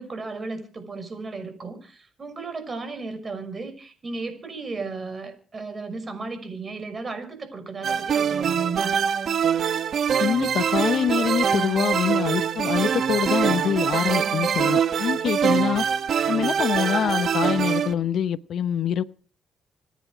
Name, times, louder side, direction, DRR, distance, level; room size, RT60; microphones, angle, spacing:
voice 1, 0.0-8.9, right 4 dB, 35° right, 5.8 m, -34 dB
sound 1, 7.8-17.9, right 7 dB, 60° right, 1.2 m, -24 dB
voice 2, 10.2-15.8 16.3-19.0, left 9 dB, 65° left, 0.7 m, -25 dB
26.5 x 10.5 x 4.9 m
cardioid pair, 90°, 0 cm